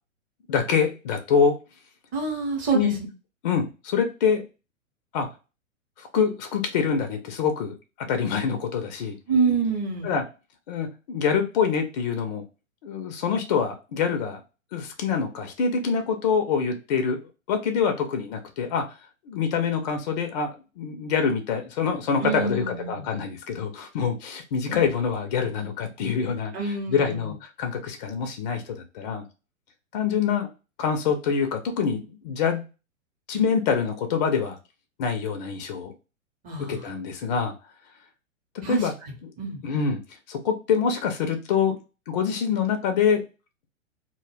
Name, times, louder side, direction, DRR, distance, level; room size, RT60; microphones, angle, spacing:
voice 1, 0.5-1.5 2.7-2.9 3.4-4.4 5.1-5.3 6.0-7.7 8.1-9.2 10.0-10.2 10.7-12.4 12.8-14.4 14.7-17.2 17.5-18.8 19.3-20.5 20.8-26.5 26.9-29.2 29.9-30.5 30.8-32.6 33.3-34.6 35.0-35.9 36.7-37.5 38.7-38.9 39.2-39.3 39.6-40.0 40.3-41.8 42.1-43.2, left 6 dB, 35° left, 5 dB, 0.4 m, -25 dB
voice 2, 2.1-3.0 9.3-10.1 22.2-23.1 26.5-27.3 36.4-36.8 38.6-39.6, right 4 dB, 20° right, 1 dB, 0.6 m, -27 dB
2.1 x 2.1 x 3.2 m, 0.31 s
figure-of-eight pair, 115°, 40 cm